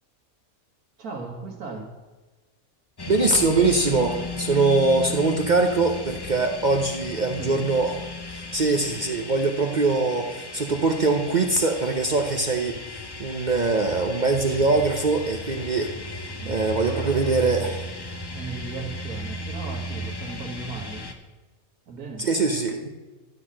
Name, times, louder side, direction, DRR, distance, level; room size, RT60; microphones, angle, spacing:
voice 1, 1.0-1.9 7.2-7.6 16.4-17.8 18.3-21.1 21.9-22.3, right 4 dB, 85° right, -1 dB, 1.9 m, -36 dB
sound 1, 3.0-21.1, left 1 dB, 30° left, 0.5 m, -35 dB
voice 2, 3.1-8.0 8.3-17.8 22.2-22.9, right 3 dB, 45° right, 4 dB, 0.6 m, -23 dB
12.5 x 4.1 x 7.5 m, 1.2 s
omnidirectional pair, 1.5 m